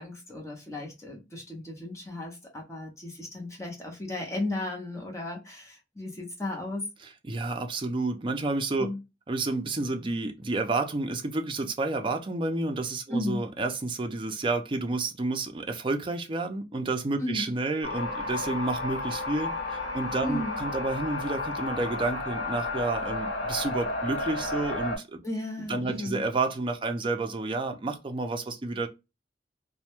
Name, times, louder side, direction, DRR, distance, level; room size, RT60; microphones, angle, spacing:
voice 1, 0.0-6.8 8.8-9.0 13.1-13.4 17.2-17.5 20.2-20.6 25.2-26.2, left 1 dB, 15° left, 0.6 m, -34 dB
voice 2, 7.3-8.9 9.3-25.2 25.7-28.9, right 3 dB, 30° right, 0.4 m, -30 dB
sound 1, 17.8-25.0, left 2 dB, 75° left, 1.0 m, -32 dB
2.1 x 2.1 x 2.9 m
head